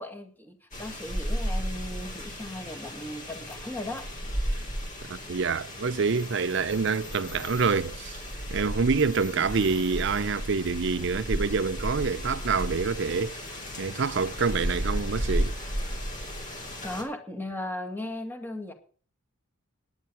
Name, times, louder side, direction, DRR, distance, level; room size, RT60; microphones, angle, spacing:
voice 1, 0.0-4.1 16.8-18.7, left 1 dB, 10° left, 2.1 m, -37 dB
sound 1, 0.7-17.0, equal, 35° left, 2.9 m, -34 dB
voice 2, 5.1-8.2 8.5-13.5 13.8-15.5, right 5 dB, 55° right, 0.5 m, -27 dB
sound 2, 5.6-10.8, left 4 dB, 60° left, 4.6 m, -49 dB
11.0 x 9.6 x 7.0 m
head